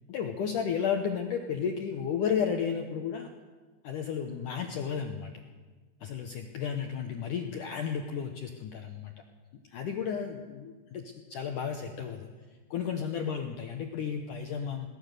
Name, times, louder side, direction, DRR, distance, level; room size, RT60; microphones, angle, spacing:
voice 1, 0.1-3.3 3.8-5.3 6.0-9.1 9.7-12.3 12.7-14.9, left 7 dB, 75° left, 4 dB, 1.9 m, -33 dB
23.0 x 18.5 x 6.7 m, 1.4 s
omnidirectional pair, 5.2 m